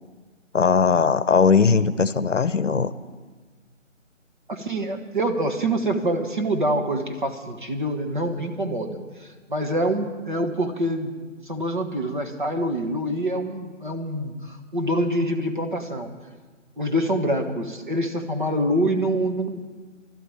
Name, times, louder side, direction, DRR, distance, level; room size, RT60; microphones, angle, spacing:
voice 1, 0.5-2.9, left 5 dB, 65° left, 15 dB, 0.8 m, -19 dB
voice 2, 4.5-11.1 11.4-16.1 16.8-19.7, right 1 dB, 40° right, 3 dB, 1.3 m, -26 dB
12.5 x 12.0 x 8.6 m, 1.4 s
figure-of-eight pair, 170°, 39 cm